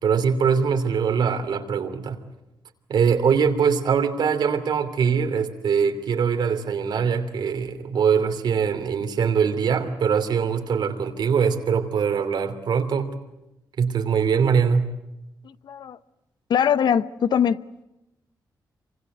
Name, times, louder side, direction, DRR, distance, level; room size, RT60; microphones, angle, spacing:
voice 1, 0.0-2.2 2.9-13.1 13.8-14.9, right 6 dB, 75° right, 3.0 m, -22 dB
voice 2, 15.4-16.0 16.5-17.6, left 8 dB, 75° left, 0.9 m, -22 dB
27.0 x 25.5 x 8.1 m
cardioid pair, 95°, 8 cm